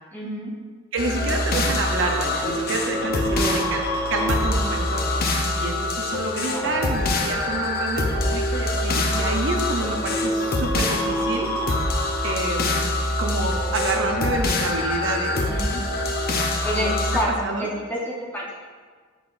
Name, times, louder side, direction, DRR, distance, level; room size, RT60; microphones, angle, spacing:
voice 1, 0.1-0.5 3.3-3.7 6.5-6.7 15.4-15.8 16.6-18.5, equal, 10° left, -5 dB, 0.9 m, -29 dB
voice 2, 0.9-3.8 4.1-5.3 5.6-11.8 12.2-12.7 13.2-15.4 16.7-17.7, right 3 dB, 60° right, 2 dB, 0.6 m, -28 dB
sound 1, 1.0-17.2, left 1 dB, 45° left, 0.6 m, -24 dB
8.2 x 5.6 x 2.5 m, 1.6 s
head